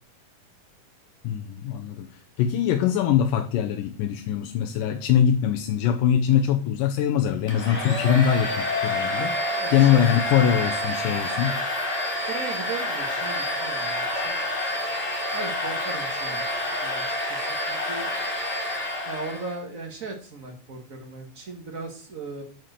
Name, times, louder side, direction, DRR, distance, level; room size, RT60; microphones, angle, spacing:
voice 1, 1.2-11.6, left 9 dB, 85° left, 4 dB, 2.4 m, -23 dB
Domestic sounds home sounds, 7.5-19.6, left 1 dB, 15° left, 1.9 m, -28 dB
voice 2, 9.5-10.1 12.3-14.4 15.3-18.1 19.0-22.4, right 3 dB, 65° right, 3 dB, 0.8 m, -37 dB
9.3 x 4.5 x 6.5 m, 0.41 s
omnidirectional pair, 3.8 m